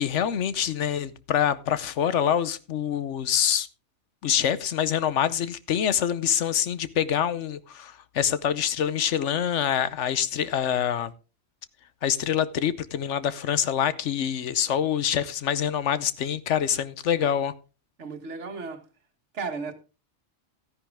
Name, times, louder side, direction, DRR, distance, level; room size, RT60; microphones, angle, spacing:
voice 1, 0.0-3.7 4.2-11.1 12.0-17.5, left 9 dB, 80° left, 1.1 m, -25 dB
voice 2, 18.0-18.8 19.3-19.7, right 4 dB, 75° right, 1.8 m, -34 dB
13.0 x 10.0 x 3.5 m
omnidirectional pair, 1.2 m